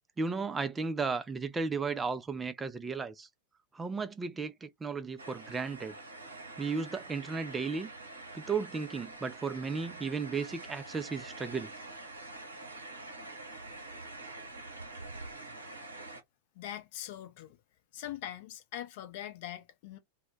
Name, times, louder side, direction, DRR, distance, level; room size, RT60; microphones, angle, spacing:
voice 1, 0.2-3.3 3.7-6.0 6.6-7.9 8.3-11.7, right 4 dB, 15° right, 0.3 m, -34 dB
sound 1, 5.2-16.2, right 2 dB, 80° right, 0.7 m, -46 dB
voice 2, 16.6-17.6 17.9-20.0, left 12 dB, 50° left, 0.5 m, -42 dB
2.1 x 2.1 x 3.7 m
figure-of-eight pair, 90°, 0 cm